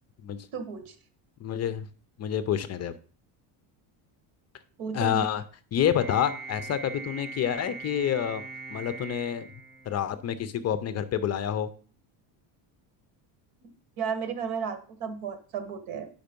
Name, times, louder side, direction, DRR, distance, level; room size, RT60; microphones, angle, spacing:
voice 1, 0.5-0.9 4.8-5.3 14.0-16.1, right 6 dB, 85° right, 10 dB, 1.5 m, -33 dB
voice 2, 1.4-1.9 2.2-2.9 4.9-5.4 5.7-8.4 8.7-9.5 9.9-11.7, left 9 dB, 35° left, 13 dB, 0.5 m, -28 dB
sound 1, 5.9-10.4, right 4 dB, 10° left, 4.3 m, -41 dB
7.8 x 5.3 x 5.1 m, 0.41 s
cardioid pair, 150°, 48 cm